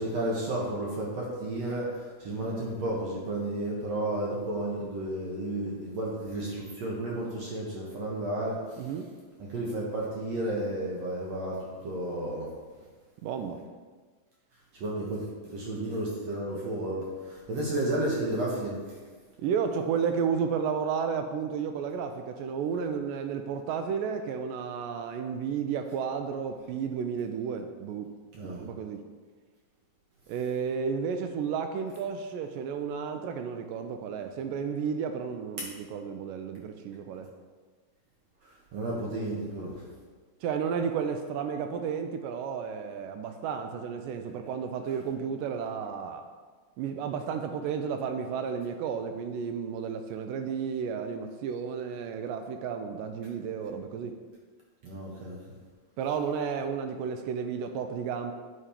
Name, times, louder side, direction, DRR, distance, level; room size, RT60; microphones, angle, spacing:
voice 1, 0.0-8.9 9.5-11.6 11.8-12.5 14.7-19.0 28.3-28.6 38.4-39.8 54.8-55.4, right 1 dB, 60° right, -4 dB, 1.9 m, -32 dB
voice 2, 8.8-9.1 13.2-13.6 19.4-28.1 28.5-29.0 30.3-37.3 40.4-46.3 46.8-54.2 56.0-58.3, right 6 dB, 80° right, 6 dB, 2.1 m, -32 dB
9.5 x 5.1 x 4.3 m, 1.4 s
omnidirectional pair, 4.1 m